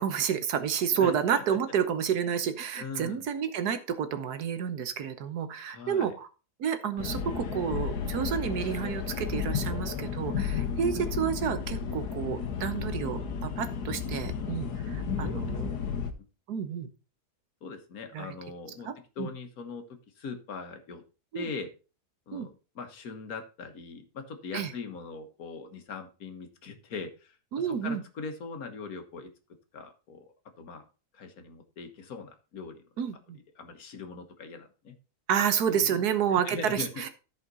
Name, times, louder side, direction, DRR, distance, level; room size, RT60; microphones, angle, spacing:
voice 1, 0.0-6.3 6.6-15.7 16.5-16.9 18.1-18.3 18.8-19.3 21.3-21.5 22.3-22.5 24.5-24.7 27.5-28.0 33.0-33.4 35.3-37.1, right 8 dB, 80° right, 10 dB, 1.5 m, -30 dB
voice 2, 2.8-3.3 5.7-6.1 11.0-11.1 15.2-15.6 15.9-16.1 17.6-18.9 19.2-19.8 20.2-21.0 21.3-21.7 22.3-29.3 29.7-30.3 30.6-30.8 31.1-32.8 33.6-35.0 35.7-36.0 36.3-37.0, left 4 dB, 65° left, 6 dB, 1.7 m, -41 dB
sound 1, 7.0-16.1, left 6 dB, 90° left, 1.6 m, -33 dB
14.0 x 5.1 x 4.0 m, 0.33 s
omnidirectional pair, 1.7 m